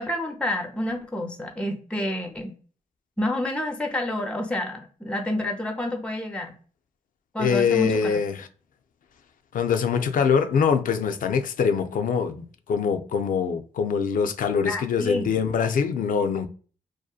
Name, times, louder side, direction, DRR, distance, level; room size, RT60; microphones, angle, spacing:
voice 1, 0.0-2.6 3.2-6.6 7.3-8.2 14.6-15.4, left 1 dB, 5° left, 0.5 m, -29 dB
voice 2, 7.4-8.5 9.5-16.5, left 6 dB, 65° left, 0.4 m, -24 dB
2.7 x 2.1 x 2.3 m
cardioid pair, 50°, 15 cm